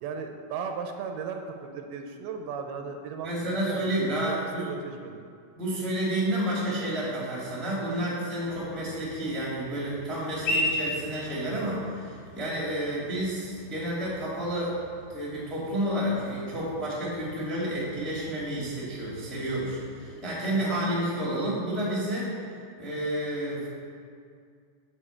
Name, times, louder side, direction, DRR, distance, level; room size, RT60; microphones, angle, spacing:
voice 1, 0.0-3.3 3.6-3.9 4.3-5.3, right 6 dB, 80° right, 4 dB, 2.6 m, -36 dB
voice 2, 3.2-4.7 5.6-14.7 15.1-22.3 22.8-23.7, right 1 dB, ahead, -6 dB, 1.3 m, -30 dB
sound 1, 8.4-20.2, left 1 dB, 60° left, 2.5 m, -38 dB
8.8 x 5.1 x 7.1 m, 2.2 s
omnidirectional pair, 4.5 m